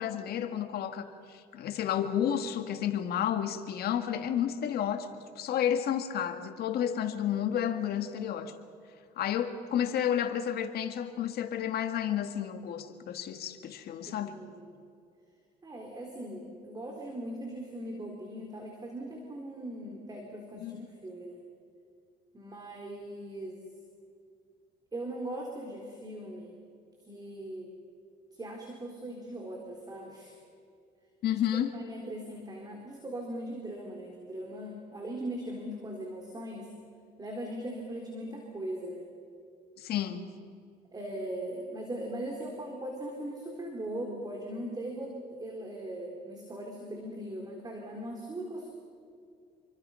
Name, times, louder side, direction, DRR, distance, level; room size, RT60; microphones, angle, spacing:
voice 1, 0.0-8.5 9.2-14.4 20.6-20.9 31.2-31.7 39.8-40.3, left 9 dB, 65° left, 7 dB, 2.1 m, -31 dB
voice 2, 14.1-14.7 15.6-21.4 22.3-23.6 24.9-26.5 27.1-27.7 28.3-30.4 31.3-36.7 37.2-39.1 40.9-48.7, right 1 dB, 25° right, 1 dB, 3.9 m, -39 dB
28.5 x 24.0 x 5.7 m, 2.4 s
cardioid pair, 110°, 17 cm